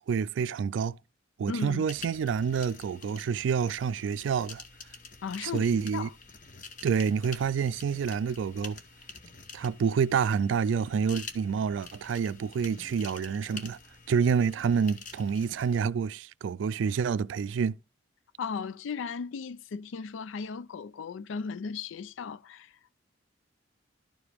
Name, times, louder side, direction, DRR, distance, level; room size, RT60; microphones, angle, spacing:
voice 1, 0.1-1.0 1.4-4.6 5.4-6.1 6.8-8.8 9.5-13.8 14.1-17.8, right 6 dB, 75° right, 0.3 m, -28 dB
voice 2, 1.5-1.8 5.2-6.1 18.4-22.7, left 5 dB, 85° left, 0.4 m, -36 dB
sound 1, 1.9-15.8, left 4 dB, 40° left, 1.0 m, -48 dB
12.0 x 4.9 x 3.4 m
head